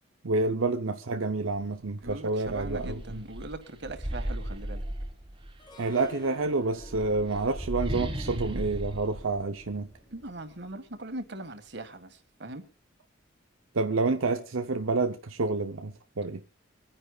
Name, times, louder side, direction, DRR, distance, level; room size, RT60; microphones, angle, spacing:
voice 1, 0.2-3.0 5.8-9.9 13.7-16.4, right 3 dB, 85° right, 0.8 m, -28 dB
sound 1, 1.5-1.6 2.0-5.7 6.6-10.2, right 1 dB, 25° right, 1.5 m, -36 dB
voice 2, 2.0-4.8 10.1-12.6, right 2 dB, 55° right, 1.9 m, -40 dB
Harp, 5.6-10.7, equal, 20° left, 1.3 m, -51 dB
25.5 x 10.0 x 2.4 m
head